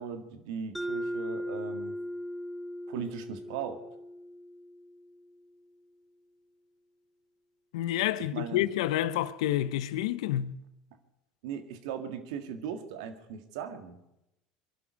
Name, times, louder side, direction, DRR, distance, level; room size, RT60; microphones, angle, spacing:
voice 1, 0.0-1.9 2.9-3.8 8.3-8.7 11.4-14.0, right 7 dB, 75° right, 1.9 m, -38 dB
Mallet percussion, 0.7-5.3, equal, ahead, 0.9 m, -38 dB
voice 2, 7.7-10.5, left 13 dB, 75° left, 0.7 m, -29 dB
23.5 x 11.5 x 5.3 m
hypercardioid pair, 80°, 3 cm